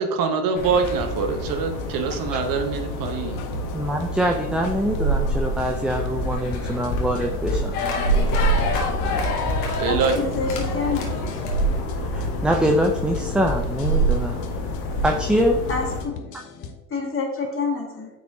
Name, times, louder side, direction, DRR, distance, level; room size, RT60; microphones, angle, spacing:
voice 1, 0.0-3.4 9.8-10.1, right 5 dB, 50° right, 6 dB, 1.0 m, -24 dB
sound 1, 0.5-16.0, right 1 dB, 70° left, 1.6 m, -26 dB
sound 2, 0.8-16.7, left 5 dB, 50° left, 1.0 m, -40 dB
voice 2, 3.7-7.7 12.1-14.4 15.0-15.6, equal, ahead, 2 dB, 0.4 m, -24 dB
sound 3, 7.7-11.8, left 4 dB, 85° left, 1.4 m, -29 dB
voice 3, 9.9-11.0 15.7-16.1 16.9-18.1, left 4 dB, 30° left, 1 dB, 1.9 m, -27 dB
9.1 x 4.9 x 2.7 m, 1.0 s
hypercardioid pair, 80°, 45 cm